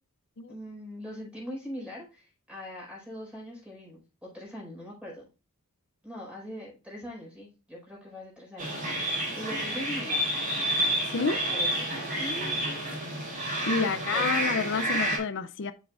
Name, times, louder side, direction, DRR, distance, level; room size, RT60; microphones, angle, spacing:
voice 1, 0.5-5.3 6.0-10.2 11.3-12.5 13.6-14.3 14.8-15.0, left 1 dB, 5° right, 4.8 m, -41 dB
sound 1, 8.6-15.2, right 1 dB, 40° right, 4.0 m, -29 dB
voice 2, 13.7-15.7, left 4 dB, 55° left, 0.5 m, -29 dB
8.2 x 7.2 x 2.4 m
head